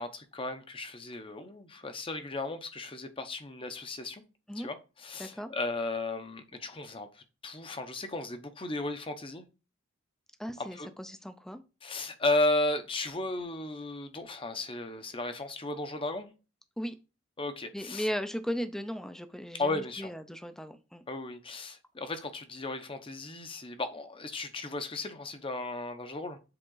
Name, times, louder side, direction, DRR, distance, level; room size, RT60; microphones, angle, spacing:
voice 1, 0.0-4.2 4.5-9.4 10.6-10.9 11.8-16.3 17.4-18.1 19.6-20.1 21.1-26.4, left 2 dB, 25° left, 0.8 m, -35 dB
voice 2, 5.2-5.5 10.4-11.6 16.8-17.0 17.7-21.0, equal, ahead, 0.5 m, -37 dB
7.8 x 3.7 x 3.8 m
head